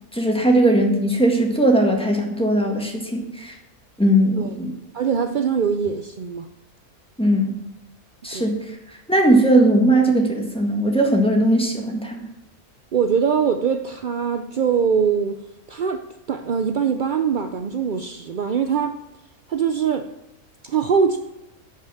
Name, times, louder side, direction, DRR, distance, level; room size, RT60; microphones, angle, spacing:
voice 1, 0.1-3.6 4.0-4.8 7.2-7.6 8.2-12.2, right 1 dB, 5° left, 0 dB, 1.6 m, -19 dB
voice 2, 4.9-6.5 8.3-8.5 12.9-15.4 15.7-19.0 19.5-20.1 20.6-21.2, right 6 dB, 65° right, 7 dB, 0.5 m, -22 dB
11.0 x 5.8 x 7.7 m, 0.91 s
omnidirectional pair, 1.5 m